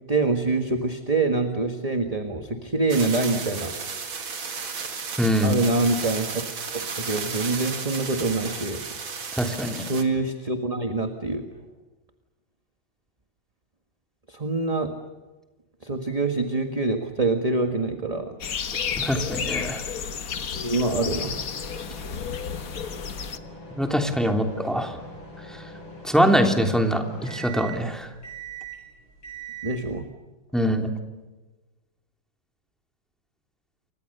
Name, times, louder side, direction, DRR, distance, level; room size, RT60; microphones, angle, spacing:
voice 1, 0.1-3.7 5.4-6.4 6.7-8.8 9.7-11.5 14.3-14.9 15.8-18.4 20.5-21.4 29.6-30.1, right 3 dB, 20° right, 6 dB, 1.5 m, -25 dB
sound 1, 2.9-10.0, right 5 dB, 70° right, 3.1 m, -33 dB
voice 2, 5.2-5.6 9.3-9.8 19.0-19.8 23.8-25.0 25.5-25.6 26.0-28.1 30.5-30.9, equal, ahead, 4 dB, 2.9 m, -23 dB
sound 2, 18.4-23.4, left 6 dB, 45° left, 1.5 m, -31 dB
sound 3, 20.8-30.0, right 3 dB, 65° left, 8.7 m, -42 dB
29.0 x 24.5 x 6.8 m, 1.2 s
omnidirectional pair, 2.3 m